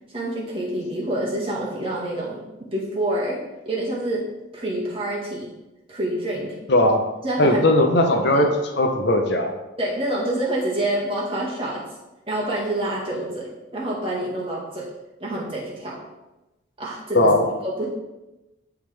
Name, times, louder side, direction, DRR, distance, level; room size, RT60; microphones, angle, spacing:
voice 1, 0.1-4.3 4.5-5.5 5.9-6.6 7.2-7.6 8.3-8.4 9.8-11.8 12.3-14.9 15.2-16.1 16.8-17.3 17.8-17.9, right 1 dB, 30° right, -6 dB, 1.8 m, -27 dB
voice 2, 6.7-7.0 7.4-8.5 8.8-9.5 17.1-17.5, left 1 dB, 55° left, 3 dB, 0.7 m, -18 dB
10.5 x 3.7 x 3.4 m, 1.0 s
head